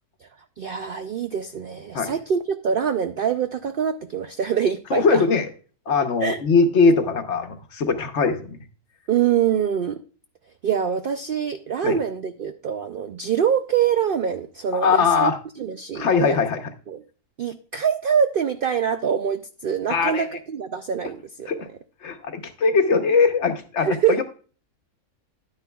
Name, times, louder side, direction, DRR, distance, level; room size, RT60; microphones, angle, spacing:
voice 1, 0.6-5.2 6.2-6.4 9.1-10.0 10.6-15.3 15.6-16.4 16.9-17.0 17.4-21.5 23.8-24.2, right 8 dB, 75° right, 9 dB, 0.5 m, -24 dB
voice 2, 4.9-5.5 5.9-8.6 11.8-12.0 14.7-15.4 15.9-16.6 19.9-20.3 21.5-21.6 22.0-24.2, left 4 dB, 55° left, 6 dB, 1.2 m, -20 dB
10.5 x 9.5 x 2.3 m, 0.39 s
omnidirectional pair, 1.5 m